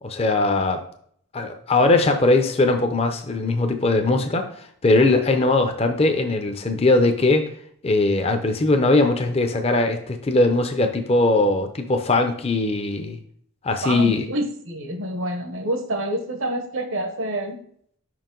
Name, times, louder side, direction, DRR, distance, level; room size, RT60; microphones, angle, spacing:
voice 1, 0.0-0.8 1.3-7.5 7.8-13.2 13.6-14.3, left 2 dB, 25° left, 6 dB, 0.5 m, -20 dB
voice 2, 13.8-17.6, right 1 dB, 65° right, 6 dB, 0.9 m, -27 dB
5.6 x 4.6 x 3.8 m, 0.62 s
head